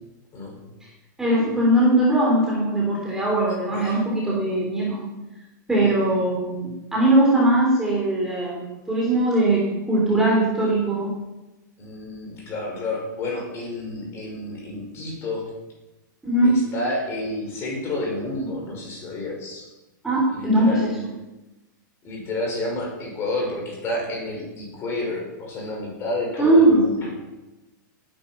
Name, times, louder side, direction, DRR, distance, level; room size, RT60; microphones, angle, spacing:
voice 1, 1.2-5.0 5.7-11.1 16.2-16.6 20.0-20.9 26.4-26.9, right 1 dB, 5° right, -4 dB, 3.3 m, -20 dB
voice 2, 11.8-15.5 16.4-19.7 20.3-20.9 22.0-27.1, left 2 dB, 25° left, 0 dB, 6.1 m, -30 dB
18.5 x 10.0 x 6.0 m, 1.0 s
supercardioid pair, 160°, 11 cm